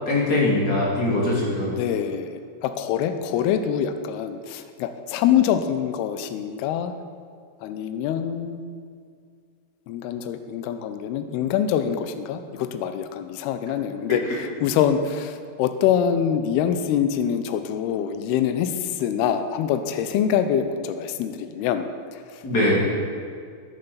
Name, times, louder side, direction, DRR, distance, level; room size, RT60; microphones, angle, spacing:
voice 1, 0.1-1.7 22.4-22.7, left 2 dB, 30° left, -4 dB, 2.3 m, -21 dB
voice 2, 1.8-6.9 7.6-8.6 9.9-22.4, left 9 dB, 80° left, 9 dB, 2.5 m, -25 dB
10.5 x 9.8 x 6.9 m, 2.2 s
omnidirectional pair, 5.0 m